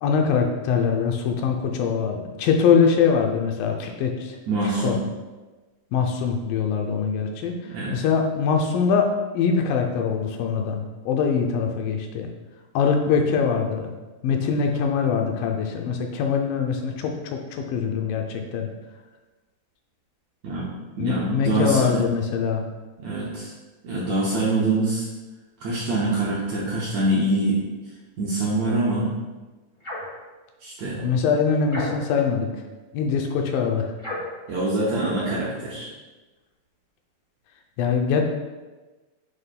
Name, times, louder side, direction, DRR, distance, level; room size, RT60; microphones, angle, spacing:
voice 1, 0.0-4.4 4.8-5.0 5.9-7.6 7.9-9.1 9.3-12.3 12.8-13.9 14.2-18.7 21.0-22.6 31.0-32.5 32.9-33.9 37.8-38.2, left 6 dB, 80° left, 3 dB, 2.3 m, -23 dB
voice 2, 4.5-5.0 7.7-7.9 20.4-20.7 20.9-22.0 23.0-23.5 23.8-25.1 25.6-27.6 28.2-29.1 30.6-31.0 34.5-35.9, right 2 dB, 75° right, -6 dB, 1.7 m, -24 dB
sound 1, 29.8-30.2 31.7-32.3 34.0-34.4, left 1 dB, 20° left, 1.7 m, -33 dB
7.5 x 6.5 x 2.2 m, 1.2 s
omnidirectional pair, 4.2 m